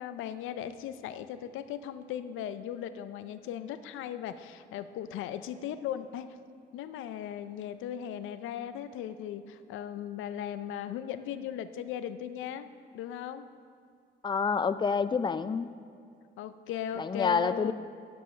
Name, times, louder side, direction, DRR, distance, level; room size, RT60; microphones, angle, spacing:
voice 1, 0.0-6.3 6.7-12.7 12.9-13.5 16.4-17.7, left 10 dB, 90° left, 12 dB, 0.5 m, -38 dB
voice 2, 14.2-15.7 17.0-17.7, left 5 dB, 25° left, 13 dB, 0.4 m, -28 dB
9.9 x 5.4 x 6.6 m, 2.3 s
cardioid pair, 90°, 20 cm